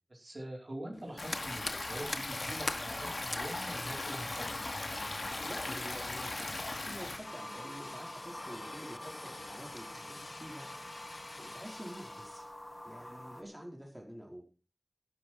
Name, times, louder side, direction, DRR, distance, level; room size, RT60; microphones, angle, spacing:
voice 1, 0.1-4.6, right 1 dB, 60° right, -1 dB, 5.0 m, -44 dB
Fire, 0.9-12.5, left 2 dB, 60° left, 1.5 m, -45 dB
Stream, 1.2-7.2, left 2 dB, 85° left, 2.9 m, -38 dB
voice 2, 5.5-10.6 11.5-12.5 12.8-14.4, equal, 10° right, 0 dB, 4.5 m, -48 dB
sound 1, 7.2-13.4, left 1 dB, 25° left, 1.9 m, -47 dB
12.5 x 11.0 x 4.6 m, 0.35 s
wide cardioid pair, 50°, 0 cm